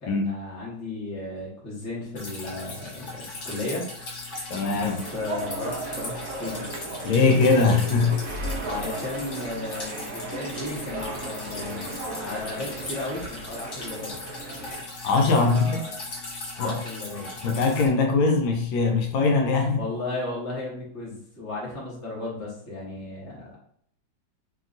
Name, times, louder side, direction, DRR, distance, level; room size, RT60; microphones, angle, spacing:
voice 1, 0.0-3.9 4.7-6.8 8.6-14.1 15.3-16.0 16.5-17.3 19.8-23.6, left 2 dB, 15° left, -6 dB, 0.5 m, -35 dB
Drip, 2.2-17.9, left 2 dB, 60° left, 0.7 m, -39 dB
voice 2, 4.5-5.0 7.0-8.1 15.0-15.8 16.6-16.8 17.4-19.8, left 4 dB, 80° left, 3 dB, 1.3 m, -21 dB
sound 1, 4.7-14.9, right 2 dB, 70° right, 0.8 m, -35 dB
3.1 x 2.8 x 2.5 m, 0.64 s
omnidirectional pair, 2.2 m